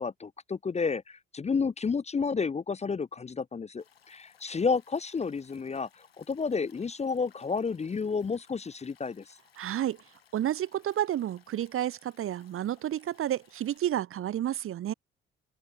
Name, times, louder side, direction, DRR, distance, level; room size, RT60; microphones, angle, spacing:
voice 1, 0.0-5.9 6.2-9.2, left 5 dB, 25° left, 0.6 m, -31 dB
Stream, 3.8-13.8, left 8 dB, 85° left, 2.3 m, -62 dB
voice 2, 9.6-10.0 10.3-14.9, right 11 dB, 45° right, 0.8 m, -30 dB
open air
figure-of-eight pair, 40°, 29 cm